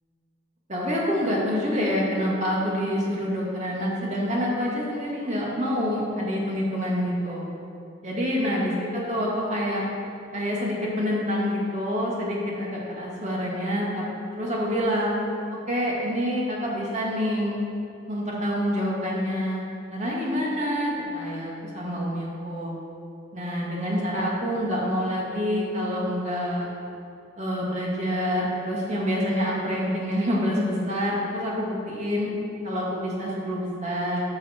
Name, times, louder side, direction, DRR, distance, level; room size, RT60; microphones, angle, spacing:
voice 1, 0.7-7.5 8.0-9.8 10.3-14.0 14.3-15.1 15.7-17.6 18.1-22.7 23.3-26.7 27.4-32.3 32.6-34.2, equal, 40° right, -4 dB, 2.3 m, -27 dB
12.5 x 7.1 x 4.6 m, 2.6 s
head